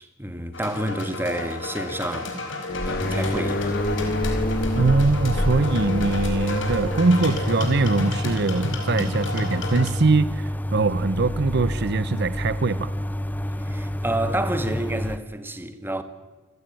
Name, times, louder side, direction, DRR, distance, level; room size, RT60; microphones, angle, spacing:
voice 1, 0.0-2.5 2.8-3.8 13.6-16.0, right 1 dB, 10° right, 1.8 m, -29 dB
sound 1, 0.5-9.9, left 2 dB, 80° left, 5.0 m, -32 dB
sound 2, 2.7-8.0, left 1 dB, 55° left, 2.2 m, -28 dB
sound 3, 3.0-15.2, equal, 10° left, 0.8 m, -29 dB
voice 2, 4.7-12.9, right 3 dB, 60° right, 0.7 m, -22 dB
28.5 x 17.0 x 9.1 m
head